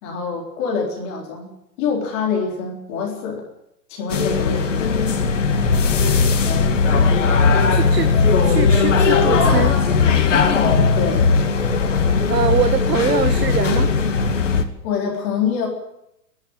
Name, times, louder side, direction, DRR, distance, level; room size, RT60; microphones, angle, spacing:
voice 1, 0.0-3.5 3.9-4.9 10.5-11.3 14.8-15.7, left 6 dB, 15° left, 0 dB, 3.9 m, -25 dB
sound 1, 4.1-14.6, left 5 dB, 45° left, 2.5 m, -17 dB
voice 2, 7.7-8.1 8.4-9.8 12.3-13.9, right 7 dB, 70° right, 9 dB, 1.8 m, -23 dB
30.0 x 11.5 x 8.9 m, 0.82 s
hypercardioid pair, 180°, 49 cm